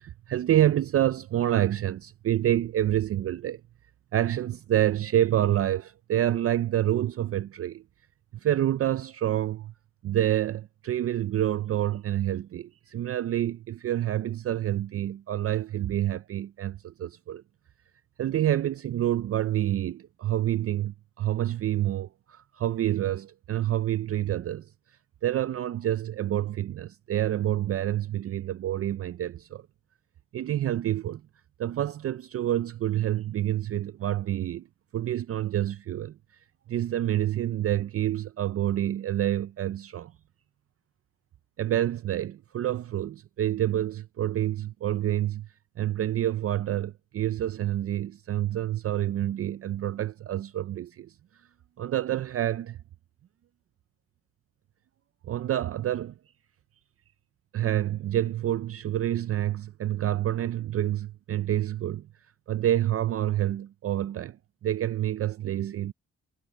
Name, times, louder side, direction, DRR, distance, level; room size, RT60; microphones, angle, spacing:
voice 1, 0.0-3.6 4.1-7.8 8.4-9.7 10.0-17.4 18.2-24.7 25.2-29.6 30.3-31.2 31.6-34.7 34.9-36.2 36.7-40.1 41.6-45.5 45.8-51.1 51.8-52.8 55.2-56.1 57.5-62.1 62.5-64.4 64.6-65.9, right 12 dB, 50° right, 0.4 m, -28 dB
wide cardioid pair, 120°, 29 cm